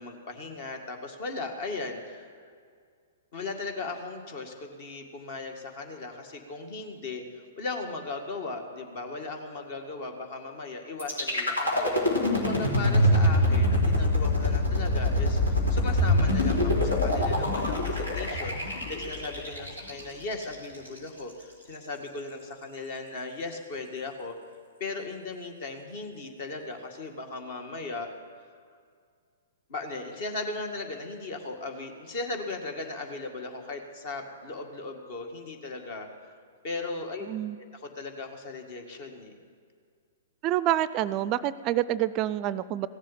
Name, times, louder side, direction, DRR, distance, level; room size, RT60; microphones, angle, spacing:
voice 1, 0.0-2.3 3.3-7.2 7.6-24.3 24.8-28.1 29.7-36.3 36.6-37.3 37.7-39.4, left 3 dB, 50° left, 4 dB, 1.9 m, -37 dB
sound 1, 11.0-21.0, left 1 dB, 85° left, 3.0 m, -24 dB
voice 2, 37.2-37.6 40.4-42.9, right 13 dB, 35° right, 16 dB, 0.4 m, -27 dB
16.0 x 7.5 x 9.0 m, 2.1 s
hypercardioid pair, 115°, 0 cm